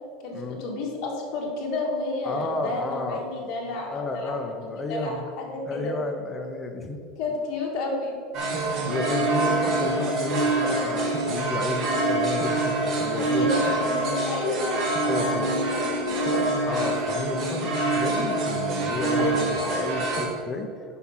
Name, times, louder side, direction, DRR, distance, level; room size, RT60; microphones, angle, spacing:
voice 1, 0.2-4.3 4.9-5.9 7.2-8.2 13.2-16.5 19.2-19.7, left 3 dB, 45° left, -1 dB, 1.7 m, -31 dB
voice 2, 2.2-3.2 3.8-5.2 5.7-7.0 8.9-13.7 15.1-15.5 16.7-19.3 19.7-21.0, left 3 dB, 15° left, 4 dB, 0.7 m, -32 dB
sound 1, 8.3-20.3, right 2 dB, 30° right, 1.2 m, -25 dB
8.2 x 6.0 x 5.7 m, 2.3 s
supercardioid pair, 170°, 0 cm